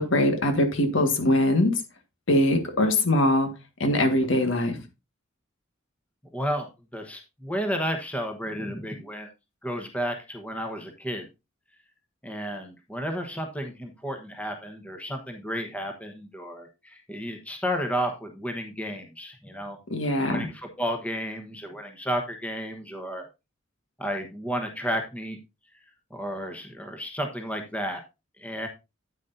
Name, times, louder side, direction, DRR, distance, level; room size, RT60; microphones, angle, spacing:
voice 1, 0.0-1.7 2.3-3.5 3.8-4.8 19.9-20.5, left 1 dB, 65° left, 6 dB, 1.7 m, -22 dB
voice 2, 6.3-6.7 6.9-9.3 9.6-11.3 12.2-19.8 20.1-23.3 24.0-25.4 26.1-28.0 28.4-28.7, equal, 5° left, 5 dB, 1.2 m, -32 dB
9.5 x 9.3 x 2.7 m, 0.25 s
head